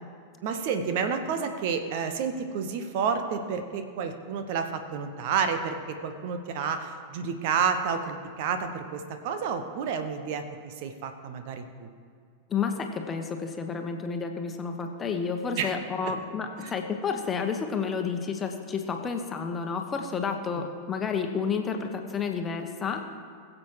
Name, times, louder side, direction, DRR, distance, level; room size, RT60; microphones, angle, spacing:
voice 1, 0.4-11.9 15.6-15.7 16.0-16.1 16.6-16.7 20.5-20.6, right 6 dB, 50° right, 8 dB, 1.0 m, -30 dB
voice 2, 12.5-23.1, left 5 dB, 20° left, 4 dB, 1.2 m, -30 dB
21.0 x 7.6 x 4.8 m, 2.3 s
figure-of-eight pair, 90°, 0 cm